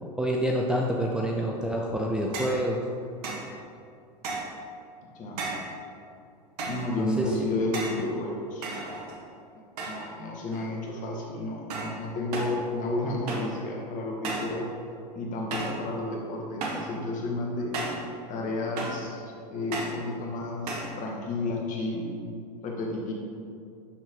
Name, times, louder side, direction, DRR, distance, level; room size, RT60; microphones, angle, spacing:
voice 1, 0.0-2.8 6.9-7.3, equal, 5° right, -1 dB, 0.6 m, -27 dB
sound 1, 2.3-2.6 3.2-3.5 4.2-4.6 5.4-5.7 6.6-6.9 7.7-8.1 8.6-9.3 9.8-10.2 10.5-10.9 11.7-12.0 12.3-12.6 13.3-13.6 14.2-14.6 15.5-15.8 16.6-16.9 17.7-18.1 18.8-19.1 19.7-20.0 20.7-21.0, right 3 dB, 65° right, 1.6 m, -34 dB
voice 2, 5.0-5.4 6.6-9.0 9.9-14.7 15.1-17.7 18.3-22.1 22.6-23.1, left 2 dB, 40° left, -1 dB, 1.9 m, -32 dB
11.5 x 4.4 x 3.9 m, 2.5 s
hypercardioid pair, 95°, 21 cm